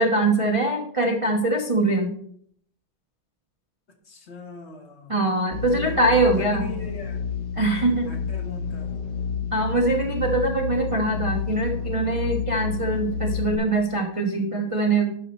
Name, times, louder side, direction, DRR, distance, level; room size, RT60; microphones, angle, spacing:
voice 1, 0.0-2.1 5.1-6.7 7.6-8.1 9.5-15.2, right 2 dB, 30° right, 0 dB, 0.5 m, -23 dB
voice 2, 4.0-5.1 5.7-7.2 8.0-8.9, left 3 dB, 40° left, 4 dB, 1.2 m, -40 dB
sound 1, 5.5-13.6, left 6 dB, 60° left, 1.3 m, -30 dB
12.0 x 4.5 x 4.2 m, 0.63 s
omnidirectional pair, 2.3 m